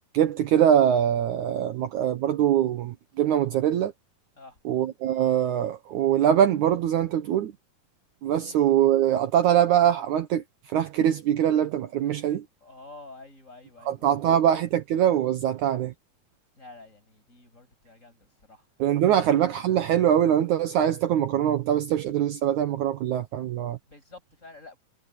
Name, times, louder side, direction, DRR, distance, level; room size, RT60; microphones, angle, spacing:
voice 1, 0.1-3.9 4.7-7.5 8.2-10.4 10.7-12.5 13.9-15.9 18.8-23.8, right 10 dB, 70° right, 2.2 m, -23 dB
voice 2, 12.6-14.3 16.6-18.7 19.1-19.2 23.9-24.8, left 2 dB, 20° left, 7.4 m, -49 dB
omnidirectional pair, 3.9 m